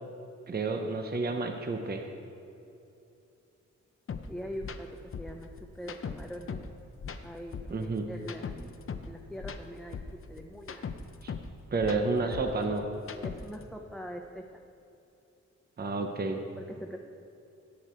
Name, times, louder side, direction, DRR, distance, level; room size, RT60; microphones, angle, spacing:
voice 1, 0.5-2.0 7.7-8.1 11.2-11.3 11.7-12.9 15.8-16.4, right 3 dB, 35° right, 4 dB, 0.8 m, -30 dB
sound 1, 4.1-4.2 4.6-4.8 5.1-6.7 7.0-9.1 9.4-11.5 11.8-13.6, left 6 dB, 45° left, 0.7 m, -39 dB
voice 2, 4.3-6.6 7.2-8.7 9.0-10.0 10.3-10.9 11.9-12.4 13.2-14.6 16.5-17.0, equal, ahead, 1 dB, 0.6 m, -43 dB
17.0 x 6.3 x 4.4 m, 2.8 s
cardioid pair, 85°, 29 cm